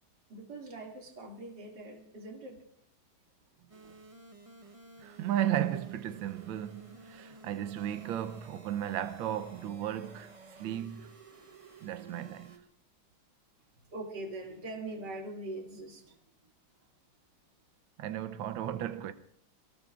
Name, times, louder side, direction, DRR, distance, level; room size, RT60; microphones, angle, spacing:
voice 1, 0.3-2.6 13.9-16.2, right 2 dB, 55° right, 3.1 m, -42 dB
sound 1, 3.7-12.6, right 3 dB, 25° right, 0.7 m, -54 dB
voice 2, 5.0-11.2 11.8-12.6 18.0-19.1, right 11 dB, 75° right, 1.5 m, -35 dB
27.0 x 19.0 x 2.5 m
omnidirectional pair, 2.2 m